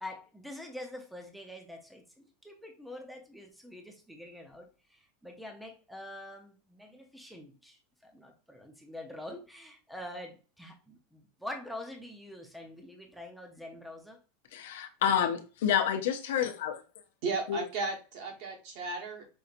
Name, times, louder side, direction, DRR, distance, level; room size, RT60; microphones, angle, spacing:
voice 1, 0.0-14.2, left 1 dB, ahead, 3 dB, 0.7 m, -45 dB
voice 2, 14.5-16.8 17.5-17.6, left 9 dB, 80° left, 7 dB, 0.6 m, -29 dB
voice 3, 17.2-19.3, right 3 dB, 50° right, 1 dB, 1.3 m, -35 dB
5.4 x 2.7 x 2.5 m, 0.33 s
supercardioid pair, 165°, 0 cm